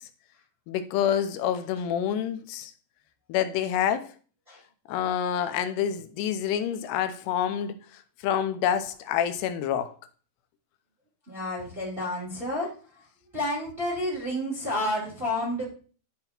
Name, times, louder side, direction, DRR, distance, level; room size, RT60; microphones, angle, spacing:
voice 1, 0.7-2.7 3.3-4.1 4.9-7.8 8.2-9.9, left 9 dB, 80° left, 2.7 m, -27 dB
voice 2, 11.3-12.7 13.3-15.6, left 1 dB, 15° right, 2.1 m, -30 dB
11.5 x 4.1 x 4.3 m
omnidirectional pair, 5.0 m